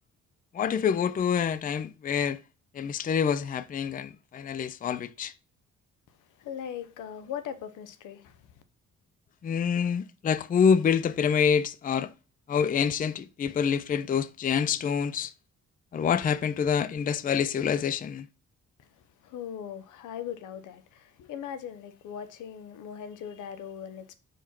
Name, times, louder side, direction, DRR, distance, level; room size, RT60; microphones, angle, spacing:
voice 1, 0.5-2.4 2.7-5.3 9.4-12.1 12.5-15.3 15.9-18.3, left 7 dB, 30° left, 0.4 m, -26 dB
voice 2, 6.4-8.4 18.8-18.9 19.2-24.1, left 9 dB, 85° left, 0.9 m, -39 dB
4.7 x 4.4 x 5.8 m
cardioid pair, 90°, 30 cm